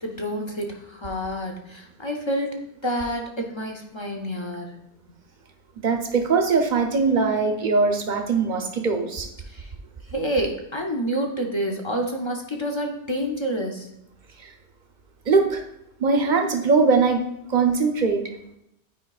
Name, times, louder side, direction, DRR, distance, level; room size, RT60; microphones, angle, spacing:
voice 1, 0.0-4.8 9.5-9.7 10.1-13.9, equal, 35° left, 1 dB, 0.5 m, -28 dB
voice 2, 5.8-9.3 15.3-15.6 16.0-17.2 17.5-18.3, right 4 dB, 50° right, 5 dB, 0.7 m, -21 dB
8.6 x 4.8 x 2.3 m, 0.81 s
omnidirectional pair, 1.2 m